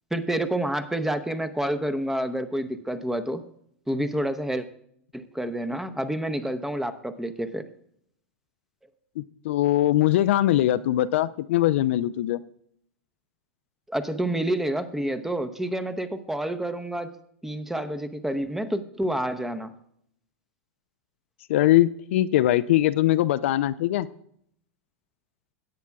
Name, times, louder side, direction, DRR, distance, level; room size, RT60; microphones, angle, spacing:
voice 1, 0.1-3.4 3.9-4.7 5.1-7.6 13.9-17.1 17.4-19.7, right 1 dB, 5° right, 10 dB, 0.8 m, -28 dB
voice 2, 9.2-12.4 21.5-24.1, left 14 dB, 65° left, 14 dB, 0.4 m, -21 dB
17.0 x 8.2 x 2.3 m, 0.70 s
hypercardioid pair, 100°, 7 cm